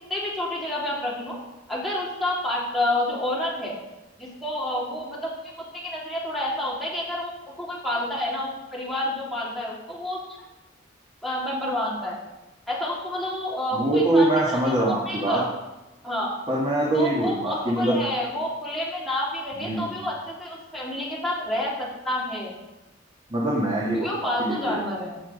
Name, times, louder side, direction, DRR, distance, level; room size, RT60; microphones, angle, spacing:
voice 1, 0.1-1.4 1.7-3.8 4.2-5.3 5.7-7.3 7.6-10.2 11.2-12.2 12.7-15.5 16.0-16.3 16.9-22.5 23.9-25.2, left 1 dB, ahead, -5 dB, 3.3 m, -29 dB
voice 2, 13.7-15.4 16.5-18.0 19.6-19.9 23.3-24.8, right 1 dB, 25° right, -4 dB, 2.0 m, -23 dB
16.5 x 6.3 x 5.3 m, 1.0 s
head